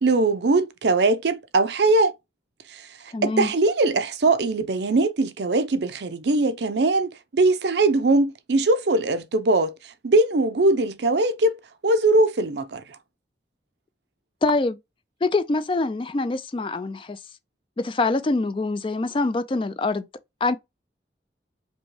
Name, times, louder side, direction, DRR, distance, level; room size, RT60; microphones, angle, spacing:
voice 1, 0.0-2.1 2.7-2.8 3.2-9.7 10.0-11.6 11.8-12.8, right 2 dB, 75° right, 0.6 m, -21 dB
voice 2, 3.1-3.5 14.4-14.8 15.2-17.2 17.8-20.1 20.4-20.6, left 3 dB, 30° left, 0.3 m, -24 dB
5.1 x 2.2 x 3.1 m
head